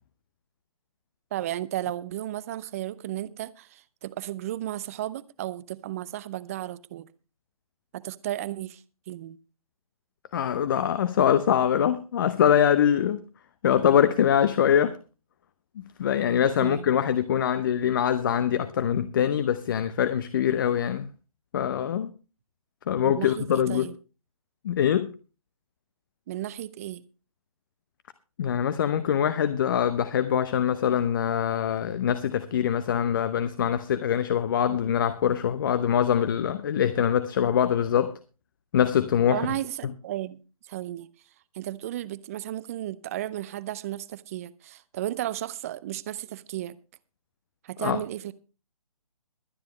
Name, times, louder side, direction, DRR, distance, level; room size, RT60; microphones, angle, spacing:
voice 1, 1.3-7.1 7.9-8.8 9.1-9.4 16.6-16.9 22.9-23.9 26.3-27.0 34.7-34.8 39.3-40.4 40.6-41.1 41.5-46.8 47.6-48.3, right 13 dB, 25° right, 0.7 m, -34 dB
voice 2, 10.3-13.2 13.6-15.0 15.8-21.1 21.5-22.1 22.9-23.9 24.6-25.1 28.4-38.1 38.7-39.5 47.8-48.0, left 9 dB, 35° left, 0.8 m, -23 dB
22.5 x 9.7 x 3.1 m
figure-of-eight pair, 140°, 19 cm